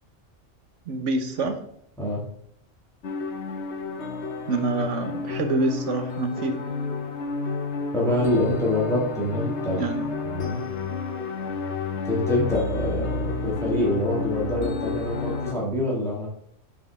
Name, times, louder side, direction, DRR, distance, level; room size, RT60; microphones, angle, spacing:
voice 1, 0.9-1.6 4.5-6.6 9.8-10.0, right 3 dB, 75° right, 7 dB, 1.3 m, -26 dB
sound 1, 3.0-15.5, left 4 dB, 65° left, 1.2 m, -31 dB
voice 2, 7.9-9.8 10.2-10.6 12.0-16.3, left 1 dB, ahead, -4 dB, 1.9 m, -25 dB
9.6 x 5.1 x 3.5 m, 0.70 s
omnidirectional pair, 1.3 m